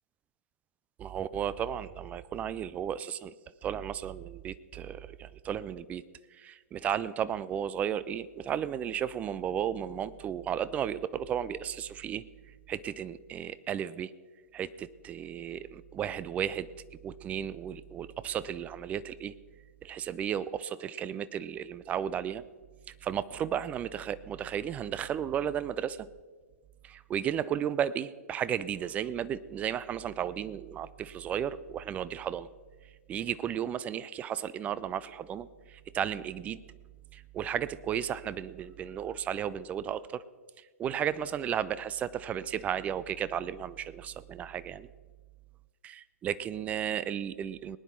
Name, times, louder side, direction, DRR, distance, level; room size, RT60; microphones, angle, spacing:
voice 1, 1.0-3.3 3.6-6.0 6.3-12.2 12.7-14.1 14.5-16.7 17.0-19.3 19.8-22.4 23.0-26.1 26.8-32.5 33.1-36.6 37.1-40.2 40.6-44.9 45.8-47.8, right 9 dB, 15° right, 17 dB, 0.3 m, -34 dB
19.5 x 9.8 x 4.5 m, 1.4 s
figure-of-eight pair, 115°, 9 cm